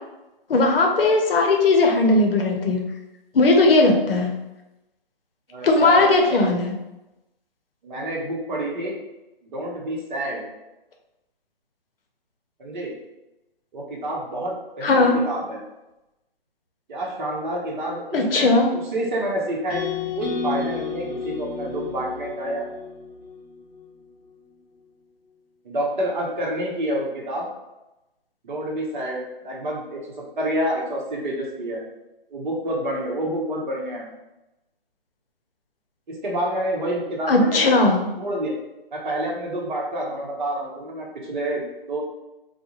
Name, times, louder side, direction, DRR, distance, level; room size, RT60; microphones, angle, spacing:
voice 1, 0.5-2.8 3.3-4.3 5.6-6.7 14.8-15.2 18.1-18.7 37.3-38.1, left 2 dB, 70° left, 2 dB, 0.6 m, -18 dB
voice 2, 5.5-6.5 7.8-8.9 9.4-10.5 12.6-12.9 13.7-15.6 16.9-18.5 18.9-19.8 20.1-22.7 25.6-27.5 28.4-30.0 30.4-31.8 32.3-34.1 36.1-37.8 38.2-38.5 38.9-42.0, right 1 dB, 55° right, -2 dB, 0.8 m, -28 dB
sound 1, 19.7-23.8, left 5 dB, 10° right, 0.5 m, -31 dB
2.3 x 2.1 x 2.9 m, 0.97 s
figure-of-eight pair, 140°, 30 cm